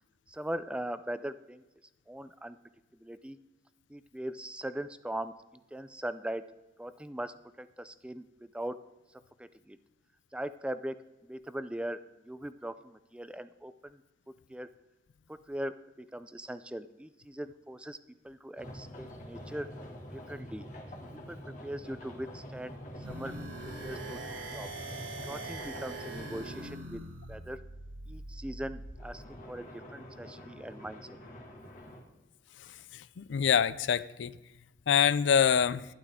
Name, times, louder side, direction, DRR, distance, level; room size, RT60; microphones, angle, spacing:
voice 1, 0.3-1.6 2.1-2.6 3.0-3.4 3.9-5.3 5.7-6.4 6.8-8.8 9.4-9.8 10.3-11.0 11.2-12.0 12.3-14.0 14.5-14.7 15.3-18.0 18.2-19.7 20.1-20.7 21.1-22.8 23.1-23.4 23.8-24.7 25.2-27.0 27.3-27.6 28.1-31.1, right 1 dB, 5° right, 0.3 m, -40 dB
sound 1, 18.6-26.8 29.0-32.0, equal, 45° left, 1.8 m, -46 dB
sound 2, 23.0-28.9, right 2 dB, 90° right, 2.4 m, -43 dB
voice 2, 32.9-34.3 34.9-35.9, left 7 dB, 80° left, 0.4 m, -25 dB
11.5 x 11.0 x 3.6 m
head